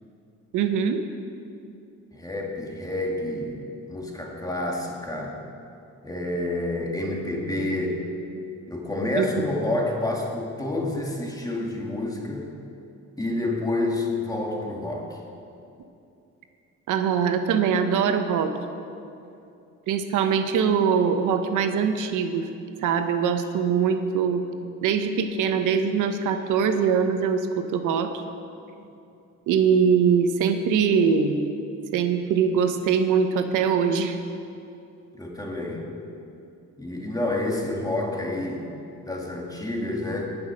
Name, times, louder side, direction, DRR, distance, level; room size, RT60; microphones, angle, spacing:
voice 1, 0.5-1.0 9.1-9.4 16.9-18.5 19.9-22.5 22.8-24.4 24.8-28.1 29.5-31.4 31.9-34.1, right 6 dB, 85° right, 7 dB, 0.9 m, -22 dB
voice 2, 2.1-5.4 6.0-8.1 8.7-12.5 13.2-15.2 28.8-28.9 35.2-35.9 36.8-38.7 39.0-40.3, left 2 dB, 10° left, -1 dB, 2.3 m, -29 dB
18.5 x 6.3 x 6.3 m, 2.6 s
cardioid pair, 90°, 30 cm